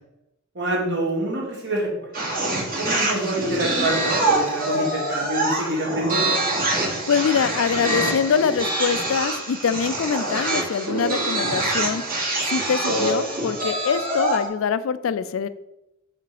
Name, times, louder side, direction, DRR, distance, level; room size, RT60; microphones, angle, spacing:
voice 1, 0.5-2.1 2.8-6.3, right 1 dB, 60° right, -3 dB, 2.1 m, -26 dB
sound 1, 2.1-14.5, right 2 dB, 45° right, 1.8 m, -25 dB
voice 2, 7.1-12.0 12.5-15.5, left 6 dB, 80° left, 14 dB, 0.4 m, -24 dB
5.8 x 3.7 x 4.9 m, 0.87 s
head